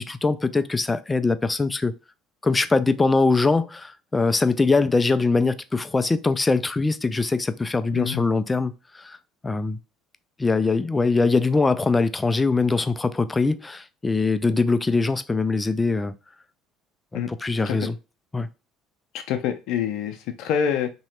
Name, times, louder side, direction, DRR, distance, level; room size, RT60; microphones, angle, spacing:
voice 1, 0.0-1.9 2.4-8.7 9.0-9.2 9.4-9.8 10.4-16.1 17.1-18.0 18.3-18.5, left 3 dB, 20° left, 0.4 m, -22 dB
voice 2, 7.9-8.2 17.1-17.3 17.7-17.8 19.3-20.9, left 8 dB, 70° left, 0.6 m, -26 dB
3.1 x 2.9 x 4.3 m
hypercardioid pair, 65°, 0 cm